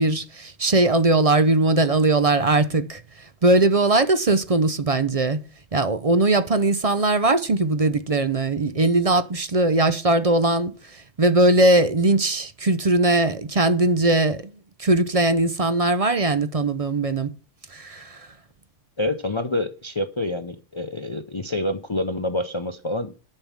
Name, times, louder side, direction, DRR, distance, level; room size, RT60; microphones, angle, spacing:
voice 1, 0.0-5.4 5.7-14.5 14.8-17.3 17.7-18.3, right 2 dB, 35° right, 0.6 m, -20 dB
voice 2, 19.0-23.1, left 1 dB, 30° left, 0.7 m, -27 dB
10.5 x 5.6 x 7.3 m
omnidirectional pair, 1.3 m